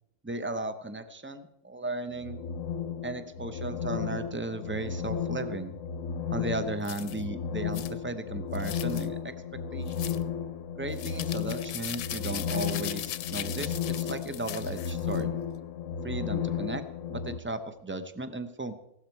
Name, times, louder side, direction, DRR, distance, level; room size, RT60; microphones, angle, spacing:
voice 1, 0.2-2.4 3.0-5.7 6.3-9.3 9.7-10.1 10.8-15.3 16.0-16.8 17.1-18.7, right 2 dB, 15° right, 10 dB, 0.4 m, -35 dB
sound 1, 2.1-17.4, left 7 dB, 65° left, 1.0 m, -34 dB
sound 2, 6.8-7.2 7.7-7.9 8.5-9.1 9.9-10.2 10.9-15.2, left 12 dB, 85° left, 1.2 m, -39 dB
16.0 x 12.5 x 4.6 m, 0.82 s
omnidirectional pair, 1.6 m